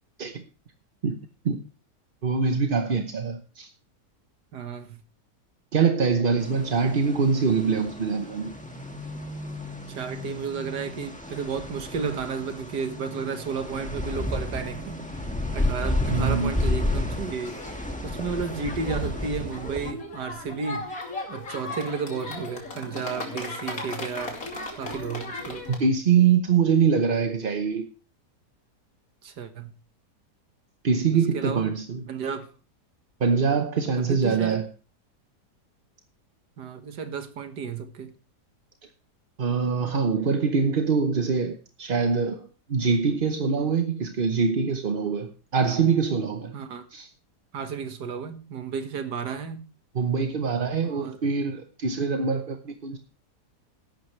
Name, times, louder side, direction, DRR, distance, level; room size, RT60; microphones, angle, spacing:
voice 1, 2.2-3.7 5.7-8.5 16.1-16.5 25.7-27.9 30.8-32.0 33.2-34.7 39.4-46.5 46.9-47.1 49.9-53.0, right 5 dB, 40° right, 0.8 m, -24 dB
voice 2, 4.5-5.0 9.9-15.1 15.5-17.6 18.0-20.9 21.3-24.4 24.7-25.7 29.2-29.7 31.3-31.7 32.1-32.5 34.0-34.6 36.6-38.1 46.5-46.8 47.5-49.7 50.8-51.2, right 5 dB, 80° right, 2.0 m, -33 dB
sound 1, 6.4-19.9, left 1 dB, 5° left, 1.5 m, -32 dB
sound 2, 17.4-25.8, left 2 dB, 55° left, 3.2 m, -37 dB
14.5 x 11.5 x 3.2 m
omnidirectional pair, 1.8 m